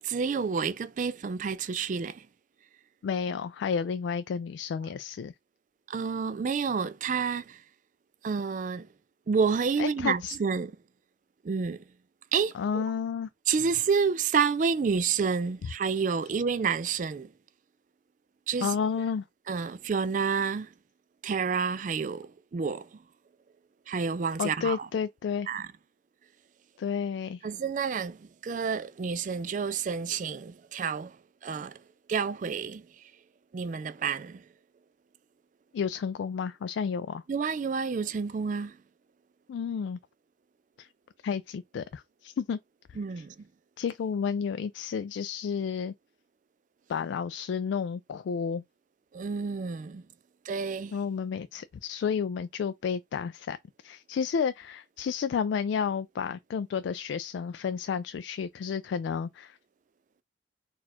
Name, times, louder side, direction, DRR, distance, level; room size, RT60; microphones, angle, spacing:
voice 1, 0.0-2.3 5.9-7.6 8.2-8.9 9.3-10.7 11.4-11.8 12.3-12.8 13.5-17.3 18.5-18.8 19.5-20.7 21.2-23.0 23.9-24.9 25.5-25.7 27.4-31.2 31.4-31.8 32.1-33.0 33.5-34.5 37.3-38.8 43.0-43.4 49.1-50.1 50.4-51.0, right 5 dB, 45° right, 0.3 m, -29 dB
voice 2, 3.0-5.3 9.8-10.4 12.5-13.3 18.6-19.2 24.4-25.5 26.8-27.5 35.7-37.2 39.5-40.0 40.8-40.9 41.2-42.6 42.9-43.2 43.8-45.9 46.9-48.6 50.9-53.6 53.8-59.6, left 6 dB, 80° left, 0.3 m, -31 dB
4.2 x 2.4 x 4.3 m
head